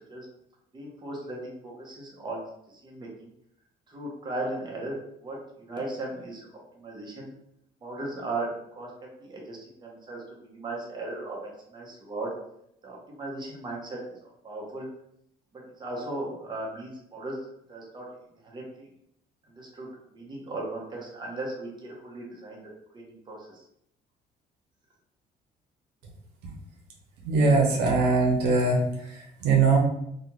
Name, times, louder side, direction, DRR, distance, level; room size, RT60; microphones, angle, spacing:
voice 1, 0.7-2.4 2.8-3.3 3.9-6.5 6.7-7.3 7.8-8.5 8.7-12.3 12.8-14.0 14.4-14.9 15.5-17.4 17.7-18.1 18.4-18.9 19.5-22.6 22.9-23.6, right 2 dB, 25° right, -3 dB, 0.8 m, -37 dB
voice 2, 27.2-28.8 29.4-29.8, right 4 dB, 85° right, -1 dB, 0.7 m, -21 dB
2.5 x 2.2 x 3.0 m, 0.76 s
cardioid pair, 110°, 17 cm